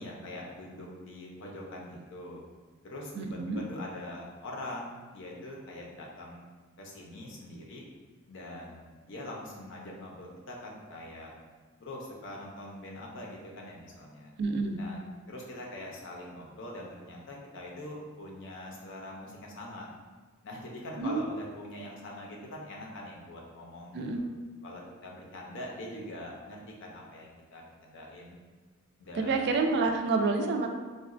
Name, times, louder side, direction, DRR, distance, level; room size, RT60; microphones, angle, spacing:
voice 1, 0.0-2.4 2.8-6.5 6.8-7.8 8.3-11.3 11.8-14.3 14.8-15.0 15.3-19.9 20.4-24.0 24.6-28.4 29.0-29.5, left 1 dB, 60° left, -2 dB, 0.6 m, -43 dB
voice 2, 3.2-3.6 14.4-14.8 21.0-21.3 23.9-24.2 29.1-30.7, right 3 dB, 50° right, 4 dB, 0.3 m, -28 dB
3.8 x 2.2 x 2.4 m, 1.4 s
head